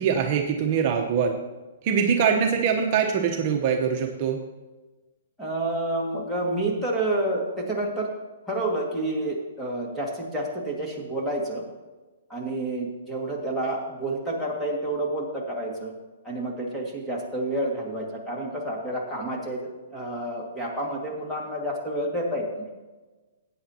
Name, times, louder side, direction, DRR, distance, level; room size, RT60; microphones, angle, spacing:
voice 1, 0.0-1.4 1.8-4.4, right 7 dB, 40° right, 2 dB, 0.9 m, -23 dB
voice 2, 5.4-8.1 8.5-11.6 12.3-16.0 16.2-22.7, right 1 dB, 5° left, -3 dB, 2.0 m, -29 dB
15.0 x 9.1 x 2.9 m, 1.2 s
hypercardioid pair, 155°, 0 cm